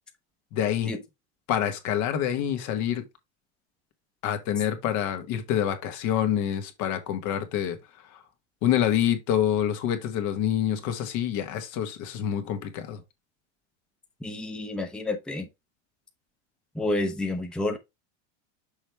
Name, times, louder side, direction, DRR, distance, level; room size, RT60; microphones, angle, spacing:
voice 1, 0.5-0.9 1.5-3.0 4.2-7.8 8.6-13.0, left 10 dB, 55° left, 1.5 m, -27 dB
voice 2, 14.2-15.5 16.7-17.8, left 2 dB, ahead, 0.8 m, -29 dB
6.3 x 3.3 x 4.5 m
hypercardioid pair, 100°, 35 cm